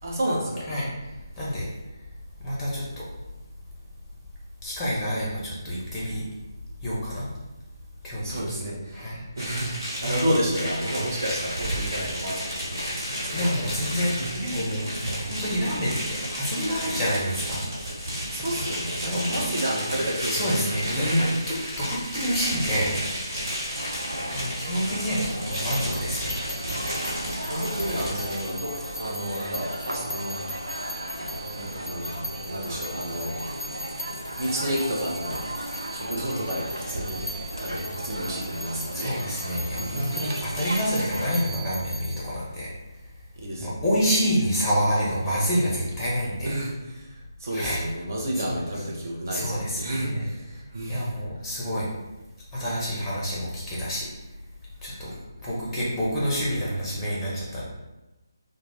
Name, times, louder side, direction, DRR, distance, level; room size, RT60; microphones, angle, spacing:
voice 1, 0.0-0.7 8.2-9.7 10.0-14.3 14.9-15.3 18.3-21.2 24.2-24.3 27.5-33.3 34.3-37.3 37.6-41.0 43.4-43.8 46.4-47.1 47.4-51.1, equal, 45° right, -3 dB, 0.7 m, -31 dB
voice 2, 2.4-2.8 4.6-6.2 6.8-7.2 8.0-8.6 8.9-9.2 10.0-10.2 13.3-14.8 15.2-17.6 19.0-19.4 20.3-21.2 21.5-23.0 24.3-26.3 27.8-28.1 38.9-42.7 43.6-46.5 47.5-47.9 48.3-48.8 49.3-50.3 50.9-51.9 52.5-54.1 54.8-55.1 55.4-57.6, equal, 5° left, -6 dB, 0.7 m, -28 dB
sound 1, 9.4-28.5, equal, 60° right, 1.5 m, -32 dB
sound 2, 23.7-41.3, right 1 dB, 85° right, 0.4 m, -36 dB
sound 3, 25.5-42.2, equal, 85° left, 0.4 m, -40 dB
2.3 x 2.1 x 3.4 m, 1.1 s
figure-of-eight pair, 150°, 2 cm